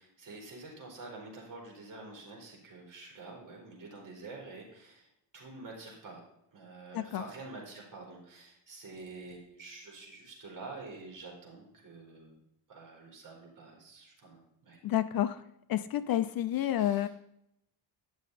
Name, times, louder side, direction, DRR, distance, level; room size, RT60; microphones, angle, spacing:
voice 1, 0.0-6.2 6.5-12.4 12.7-14.8 16.8-17.1, right 3 dB, 45° right, -1 dB, 4.1 m, -48 dB
voice 2, 14.8-15.4 15.7-17.1, left 12 dB, 55° left, 13 dB, 0.5 m, -29 dB
10.5 x 6.5 x 4.1 m, 0.79 s
cardioid pair, 125°, 44 cm